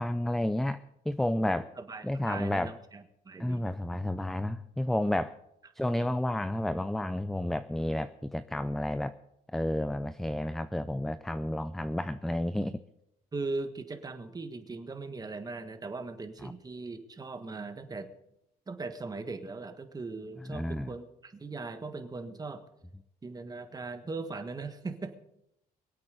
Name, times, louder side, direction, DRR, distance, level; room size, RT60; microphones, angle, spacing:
voice 1, 0.0-1.7 2.0-2.7 3.4-5.4 5.8-9.1 9.5-12.8 16.4-16.5 20.5-20.9, left 1 dB, ahead, 12 dB, 0.4 m, -31 dB
voice 2, 1.5-3.7 13.3-18.1 18.7-22.6 23.2-25.2, right 3 dB, 20° right, 7 dB, 1.6 m, -39 dB
23.0 x 8.5 x 5.1 m, 0.80 s
cardioid pair, 110°, 17 cm